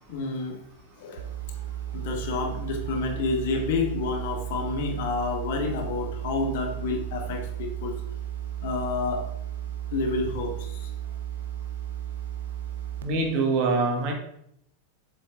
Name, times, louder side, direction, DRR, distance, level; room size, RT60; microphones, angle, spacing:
voice 1, 0.1-0.6 1.0-1.3 1.9-8.0 8.6-9.2 9.9-10.9, left 4 dB, 50° left, 4 dB, 1.3 m, -29 dB
sound 1, 1.2-13.0, right 11 dB, 60° right, 0.7 m, -34 dB
voice 2, 13.0-14.1, right 3 dB, 40° right, 1 dB, 1.7 m, -24 dB
7.3 x 5.2 x 3.6 m, 0.74 s
figure-of-eight pair, 90°, 0 cm